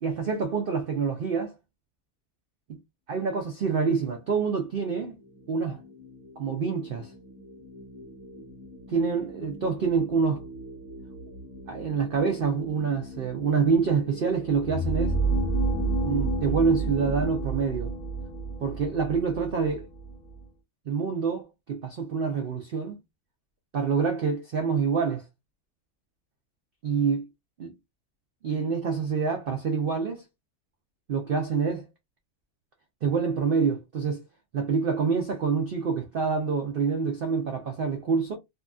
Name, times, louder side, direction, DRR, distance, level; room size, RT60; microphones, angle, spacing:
voice 1, 0.0-1.6 3.1-5.2 5.5-5.8 6.4-7.1 8.9-10.4 11.7-15.2 16.0-17.9 18.6-19.8 20.9-23.0 23.7-25.2 26.8-27.3 27.6-27.7 28.4-30.2 31.1-31.9 33.0-34.2 34.5-38.4, right 5 dB, 85° right, 0.4 m, -26 dB
sound 1, 4.1-17.5, left 1 dB, 50° left, 0.7 m, -44 dB
sound 2, 14.5-20.4, right 3 dB, 25° left, 1.3 m, -29 dB
2.7 x 2.5 x 2.3 m
omnidirectional pair, 1.6 m